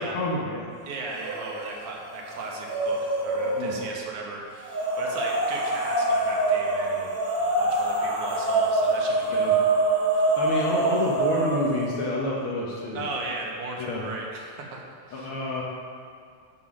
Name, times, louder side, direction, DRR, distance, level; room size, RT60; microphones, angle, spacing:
voice 1, 0.0-0.7 3.5-3.8 9.3-9.6 10.1-13.1 13.8-14.1 15.1-15.6, left 2 dB, 65° left, -4 dB, 1.4 m, -29 dB
voice 2, 0.8-9.5 12.9-15.3, right 2 dB, 90° right, -1 dB, 2.7 m, -37 dB
sound 1, 1.1-1.7 2.1-3.9 4.6-11.8, right 2 dB, 50° right, 2.8 m, -25 dB
7.2 x 7.0 x 6.2 m, 2.2 s
omnidirectional pair, 3.4 m